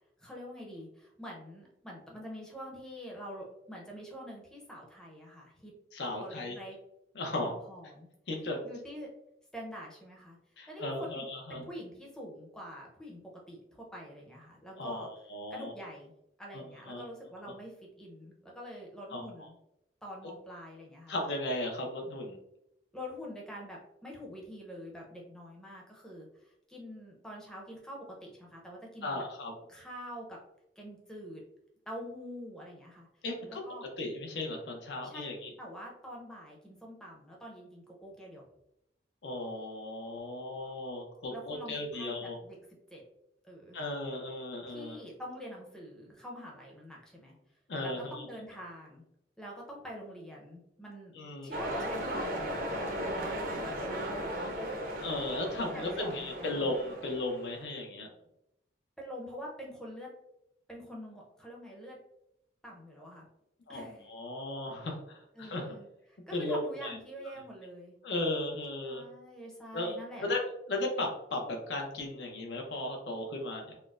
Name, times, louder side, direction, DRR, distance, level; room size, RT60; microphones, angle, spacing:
voice 1, 0.2-5.7 6.1-6.8 7.4-8.1 8.6-9.1 9.5-10.4 10.7-13.2 13.5-15.1 15.5-16.1 16.4-19.6 20.0-21.2 22.9-29.2 29.7-30.4 30.8-31.4 31.9-33.1 33.5-33.8 35.0-35.3 35.6-38.4 41.3-42.6 42.9-43.0 43.4-43.8 44.7-47.4 47.8-49.0 49.4-51.1 51.4-55.1 55.7-56.7 59.0-60.1 60.7-62.0 62.6-63.3 63.7-64.1 65.4-68.0 68.8-70.3, equal, 5° left, -2 dB, 0.6 m, -46 dB
voice 2, 5.9-6.5 7.2-7.5 8.3-8.6 10.6-11.6 14.8-15.7 16.5-17.0 19.1-19.2 21.1-22.4 29.0-29.5 33.2-33.6 34.0-35.5 39.2-42.4 43.7-45.0 47.7-48.2 51.1-51.6 55.0-58.1 63.7-65.7 66.3-67.0 68.0-69.0 69.7-70.4 70.7-73.8, left 2 dB, 65° left, 2 dB, 0.6 m, -36 dB
sound 1, 51.5-57.6, equal, 45° right, 0.5 m, -36 dB
4.2 x 2.0 x 2.4 m, 0.81 s
head